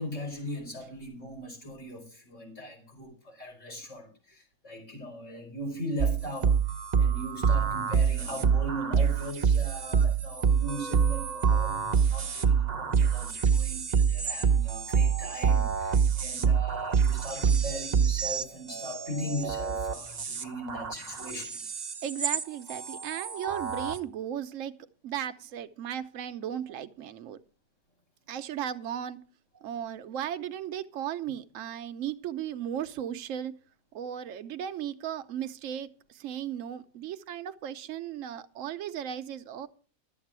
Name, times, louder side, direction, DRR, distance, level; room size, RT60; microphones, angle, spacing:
voice 1, 0.0-6.6 7.0-21.5, equal, 55° left, 4.8 m, -39 dB
sound 1, 6.0-22.4 22.7-24.0, right 6 dB, 35° right, 0.7 m, -26 dB
voice 2, 22.0-24.7 25.0-27.4 28.3-29.2 29.6-33.5 33.9-39.7, right 10 dB, 65° right, 1.0 m, -36 dB
12.0 x 8.1 x 6.1 m
omnidirectional pair, 1.6 m